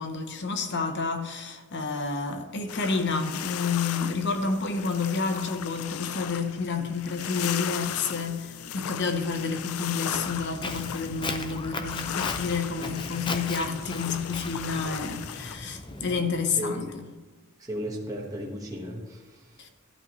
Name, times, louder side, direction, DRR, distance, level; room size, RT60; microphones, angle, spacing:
voice 1, 0.0-16.9 19.6-19.7, left 4 dB, 50° left, 0.9 m, -29 dB
sound 1, 2.7-15.6, left 9 dB, 75° left, 0.4 m, -37 dB
Walk footsteps, 10.1-16.2, left 3 dB, 20° left, 0.5 m, -37 dB
voice 2, 15.9-16.3 16.6-17.0 17.6-19.7, equal, 15° right, 1.4 m, -36 dB
12.0 x 11.0 x 3.1 m
head